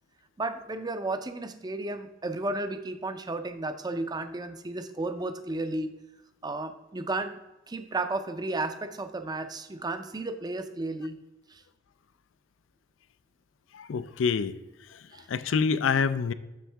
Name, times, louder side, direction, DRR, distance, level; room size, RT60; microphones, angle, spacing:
voice 1, 0.4-5.9 6.4-7.4 7.7-11.2 11.5-11.6 15.1-15.3, right 2 dB, 20° right, 9 dB, 0.5 m, -33 dB
voice 2, 13.7-14.5 14.9-16.3, left 5 dB, 80° left, 14 dB, 0.4 m, -27 dB
7.4 x 6.3 x 3.4 m, 1.0 s
head